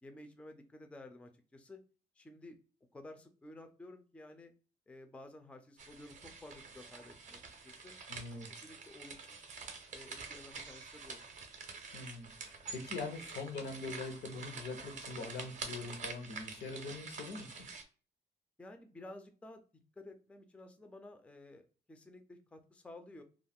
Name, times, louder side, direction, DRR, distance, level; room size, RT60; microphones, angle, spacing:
voice 1, 0.0-1.8 2.2-2.6 2.9-4.5 4.9-8.0 8.3-9.5 9.9-11.2 18.6-19.6 20.0-23.2, left 2 dB, 5° left, 0.3 m, -53 dB
sound 1, 5.8-17.8, right 4 dB, 45° right, 0.5 m, -47 dB
voice 2, 8.1-8.5 11.9-17.7, left 3 dB, 70° left, 0.7 m, -43 dB
2.3 x 2.1 x 3.4 m
cardioid pair, 130°, 18 cm